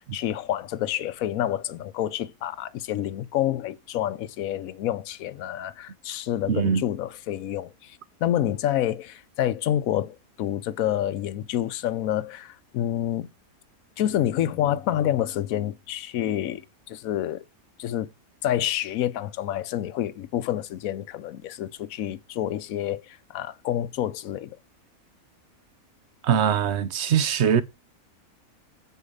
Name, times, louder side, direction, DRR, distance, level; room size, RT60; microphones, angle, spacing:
voice 1, 0.0-13.3 14.0-17.4 17.8-18.1 18.4-24.6, left 12 dB, 75° left, 1.1 m, -28 dB
voice 2, 6.5-6.8 26.2-27.6, right 8 dB, 55° right, 0.9 m, -22 dB
8.3 x 4.9 x 5.4 m
omnidirectional pair, 1.5 m